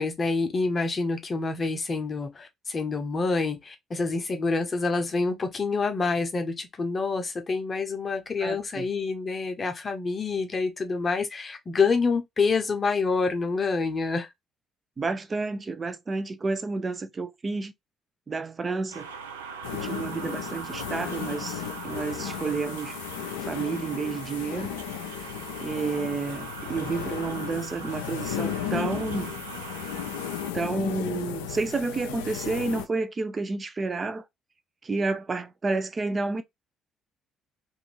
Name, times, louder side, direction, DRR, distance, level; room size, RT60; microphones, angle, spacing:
voice 1, 0.0-14.3, left 4 dB, 35° left, 0.7 m, -27 dB
voice 2, 8.4-8.9 15.0-17.7 18.3-19.1 19.7-23.0 23.5-24.7 25.6-29.3 30.5-34.2 34.8-36.4, right 3 dB, 35° right, 0.5 m, -30 dB
sound 1, 18.9-30.5, right 5 dB, 85° right, 0.3 m, -41 dB
sound 2, 19.6-32.9, left 10 dB, 80° left, 0.3 m, -35 dB
2.5 x 2.5 x 3.0 m
figure-of-eight pair, 45°, 0 cm